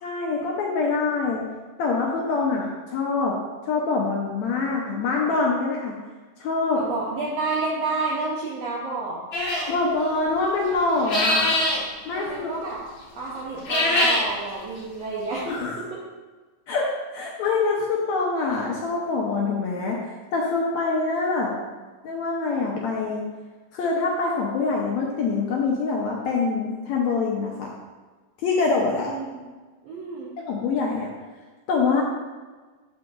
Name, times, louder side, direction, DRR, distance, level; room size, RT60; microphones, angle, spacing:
voice 1, 0.0-1.4 1.8-3.4 3.7-5.9 6.4-6.8 9.7-11.5 12.0-12.5 15.5-15.7 16.7-16.9 17.1-21.5 22.0-23.2 23.7-27.7 28.4-29.1 30.5-31.1 31.7-32.0, left 4 dB, 75° left, -2 dB, 1.7 m, -25 dB
voice 2, 6.7-9.2 12.1-12.8 13.2-15.5 15.9-16.0 28.9-29.5 29.8-30.3, right 3 dB, 75° right, -5 dB, 1.5 m, -30 dB
sound 1, 9.3-9.7 11.0-11.8 13.5-14.3, left 1 dB, 55° left, 1.4 m, -22 dB
11.0 x 3.9 x 2.4 m, 1.3 s
omnidirectional pair, 3.8 m